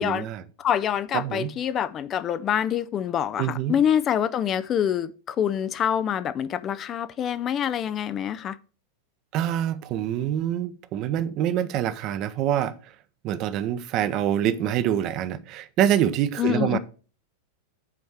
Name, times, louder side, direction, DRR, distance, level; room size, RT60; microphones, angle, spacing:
voice 1, 0.0-0.4 1.1-1.5 3.4-3.8 9.3-12.7 13.2-16.8, right 11 dB, 40° right, 0.7 m, -25 dB
voice 2, 0.6-8.6 16.4-16.8, left 9 dB, 30° left, 0.4 m, -26 dB
8.2 x 4.5 x 6.4 m
figure-of-eight pair, 90°, 0 cm